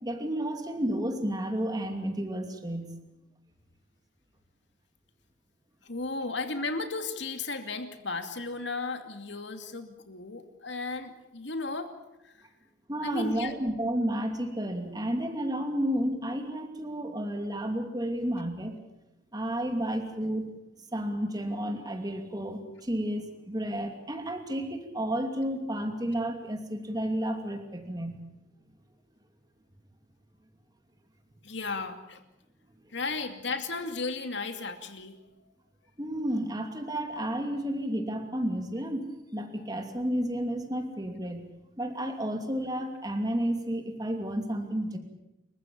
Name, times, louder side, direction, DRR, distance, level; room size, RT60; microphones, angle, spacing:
voice 1, 0.0-2.9 12.9-18.8 19.3-20.5 20.9-28.2 36.0-41.4 41.8-45.0, right 1 dB, 20° right, 5 dB, 2.8 m, -31 dB
voice 2, 5.8-11.9 12.2-12.3 13.0-13.5 31.4-32.2 32.9-35.2, left 3 dB, 70° left, 7 dB, 2.6 m, -35 dB
29.5 x 15.0 x 8.8 m, 0.94 s
head